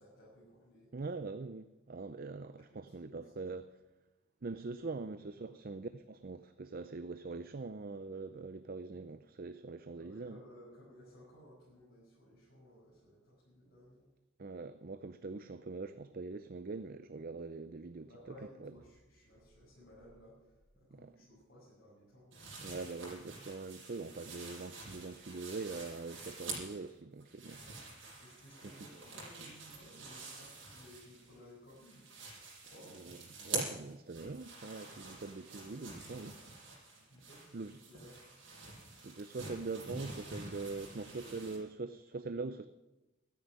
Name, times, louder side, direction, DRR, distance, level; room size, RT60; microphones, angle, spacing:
voice 1, 0.0-0.9 2.7-3.3 4.8-4.9 5.4-5.5 10.0-14.1 18.1-22.6 27.5-27.6 28.2-32.1 32.5-33.0 37.1-38.2, equal, 50° left, 6.5 m, -58 dB
voice 2, 0.9-3.7 4.4-10.4 14.4-18.1 18.6-18.7 20.9-21.1 22.6-27.6 28.6-28.7 32.9-36.4 37.5-37.8 39.0-42.7, right 3 dB, 45° right, 0.6 m, -43 dB
sound 1, 22.3-26.9 27.2-31.4 31.7-41.6, right 3 dB, 65° right, 6.3 m, -47 dB
13.5 x 10.0 x 9.5 m
head